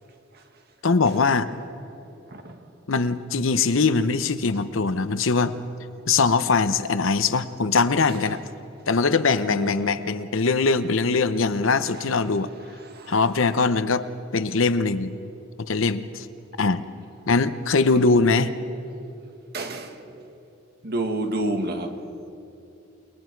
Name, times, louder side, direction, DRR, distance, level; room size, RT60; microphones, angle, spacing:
voice 1, 0.8-1.5 2.9-5.5 6.1-8.4 8.9-12.5 13.1-14.1 14.3-15.1 15.6-16.3 16.6-16.8 17.3-18.5, left 4 dB, 75° left, 0.8 m, -21 dB
voice 2, 9.5-9.9 12.9-13.1 19.5-20.0 20.8-22.0, right 1 dB, 50° right, 1.8 m, -29 dB
29.0 x 20.5 x 4.7 m
head